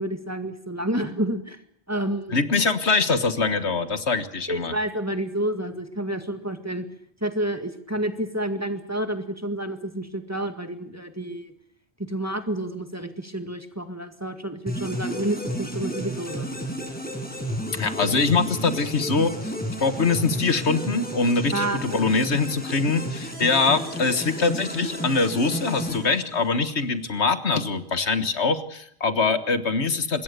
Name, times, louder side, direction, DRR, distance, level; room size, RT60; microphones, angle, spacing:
voice 1, 0.0-1.6 1.9-2.4 4.5-6.9 7.2-11.5 12.0-16.5 21.5-21.8, right 1 dB, 15° right, 7 dB, 1.9 m, -29 dB
voice 2, 2.3-4.7 17.7-19.5 19.8-30.2, left 4 dB, 80° left, 11 dB, 1.8 m, -23 dB
sound 1, 14.7-26.7, equal, 10° left, 5.3 m, -32 dB
25.0 x 22.0 x 6.8 m, 0.70 s
omnidirectional pair, 1.1 m